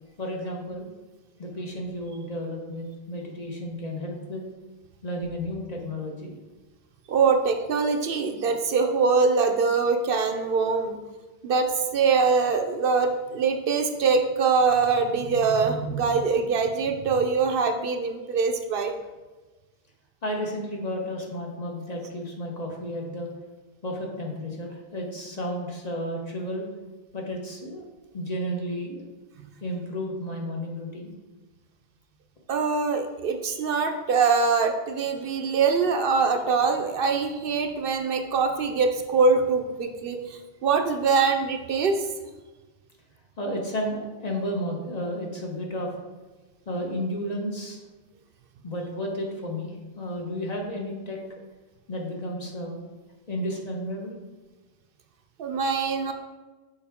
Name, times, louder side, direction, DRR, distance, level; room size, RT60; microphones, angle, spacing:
voice 1, 0.2-0.9 1.4-4.4 5.0-6.3 20.2-23.3 23.8-26.7 27.1-27.8 28.1-29.0 29.6-31.1 43.4-45.9 46.7-47.8 48.6-51.2 51.9-52.8 53.3-54.2, equal, 40° left, 0 dB, 1.1 m, -32 dB
voice 2, 7.1-11.0 11.4-18.9 32.5-42.0 55.4-56.1, right 5 dB, 65° right, 6 dB, 0.7 m, -23 dB
7.0 x 4.7 x 3.5 m, 1.2 s
omnidirectional pair, 1.0 m